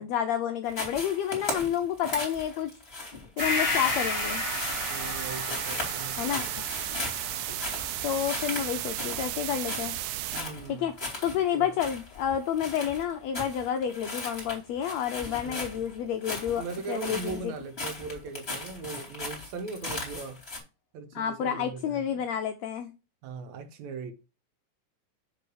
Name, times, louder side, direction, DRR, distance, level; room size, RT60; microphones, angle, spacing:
voice 1, 0.0-2.7 3.4-4.4 6.2-6.4 8.0-9.9 10.7-10.9 11.2-17.5 21.1-22.9, left 9 dB, 80° left, 1.5 m, -30 dB
sound 1, 0.7-20.6, left 2 dB, 20° left, 2.5 m, -38 dB
Gong, 3.4-11.0 11.4-11.5, left 4 dB, 50° left, 2.2 m, -35 dB
sound 2, 3.4-10.4, right 15 dB, 90° right, 2.2 m, -34 dB
voice 2, 4.9-6.9 10.3-11.8 15.4-15.7 16.5-20.4 20.9-22.2 23.2-24.1, right 4 dB, 70° right, 2.0 m, -39 dB
6.9 x 3.8 x 6.2 m
omnidirectional pair, 3.7 m